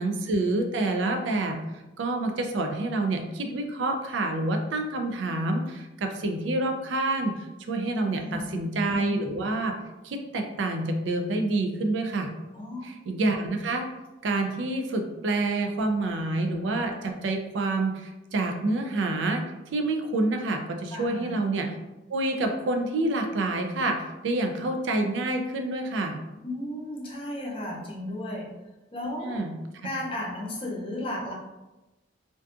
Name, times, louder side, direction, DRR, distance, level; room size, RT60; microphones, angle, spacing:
voice 1, 0.0-1.6 2.0-9.8 10.0-12.3 12.8-13.9 14.2-19.4 19.7-21.7 22.1-26.2 29.2-29.5, right 2 dB, 70° right, 4 dB, 0.4 m, -27 dB
voice 2, 8.1-8.6 12.5-12.9 20.9-21.3 26.4-28.5 28.9-29.4 29.8-31.3, left 1 dB, 30° left, -2 dB, 0.5 m, -34 dB
2.5 x 2.3 x 2.4 m, 1.0 s
head